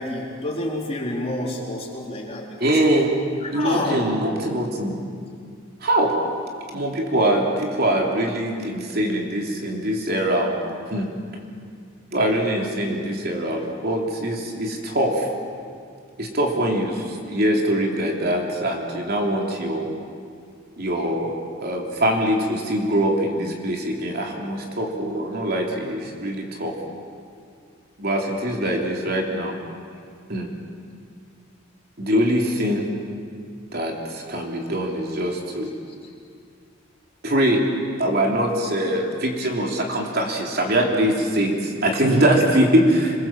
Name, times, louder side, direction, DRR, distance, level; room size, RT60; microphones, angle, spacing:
voice 1, 0.0-2.8 3.4-4.1 42.1-42.6, left 1 dB, 30° left, -2 dB, 4.0 m, -29 dB
voice 2, 2.6-3.1 3.5-4.9 5.8-6.1 6.7-10.5 10.9-11.1 12.1-15.3 16.2-19.9 20.8-26.7 28.0-29.5 30.3-30.5 32.0-32.8 33.7-35.7 37.2-37.6 38.0-43.3, right 1 dB, 50° right, 0 dB, 3.2 m, -23 dB
27.0 x 21.5 x 7.5 m, 2.2 s
head